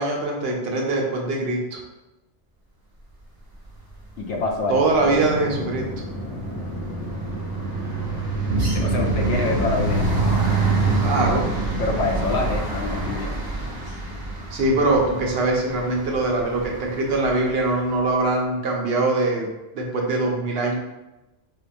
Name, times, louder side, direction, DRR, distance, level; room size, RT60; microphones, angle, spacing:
voice 1, 0.0-1.8 4.7-5.8 11.0-11.5 14.5-19.5 19.7-20.8, right 2 dB, 65° right, 0 dB, 0.8 m, -22 dB
sound 1, 3.9-4.3 4.6-17.7, right 4 dB, 25° right, 0.5 m, -28 dB
voice 2, 4.2-4.8 8.7-10.4 11.8-13.3, left 3 dB, 75° left, 1 dB, 0.9 m, -26 dB
sound 2, 4.9-12.5, left 1 dB, 25° left, 0.4 m, -33 dB
sound 3, 8.5-14.7, right 2 dB, 85° right, 1.0 m, -27 dB
4.6 x 2.1 x 2.6 m, 1.0 s
omnidirectional pair, 1.2 m